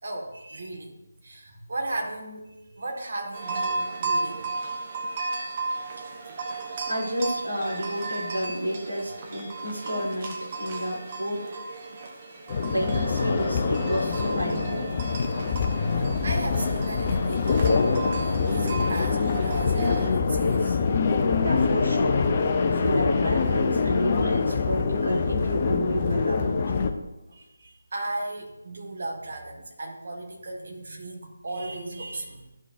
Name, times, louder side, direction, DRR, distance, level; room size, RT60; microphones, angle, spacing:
voice 1, 0.0-1.0 1.2-4.5 13.4-13.5 15.7-15.8 16.2-17.7 18.2-21.2 24.2-24.3 27.3-32.5, right 2 dB, 45° right, 0 dB, 1.9 m, -36 dB
sound 1, 3.3-20.1, right 3 dB, 25° right, 1.0 m, -34 dB
voice 2, 6.8-11.5 12.6-14.9 21.4-22.2 22.6-26.6, equal, 75° right, -3 dB, 3.2 m, -30 dB
bag on travelator, 12.5-26.9, left 4 dB, 25° left, 0.6 m, -24 dB
13.0 x 6.1 x 2.7 m, 0.97 s
figure-of-eight pair, 155°, 0 cm